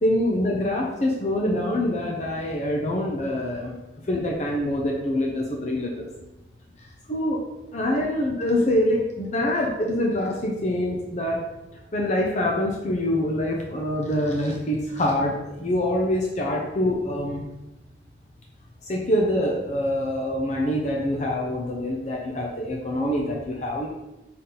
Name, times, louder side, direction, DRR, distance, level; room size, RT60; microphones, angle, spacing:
voice 1, 0.0-3.7 4.1-6.1 7.1-7.4 7.7-11.4 11.9-17.4 18.9-23.9, left 1 dB, 40° left, -1 dB, 0.7 m, -25 dB
5.8 x 4.2 x 3.8 m, 0.97 s
head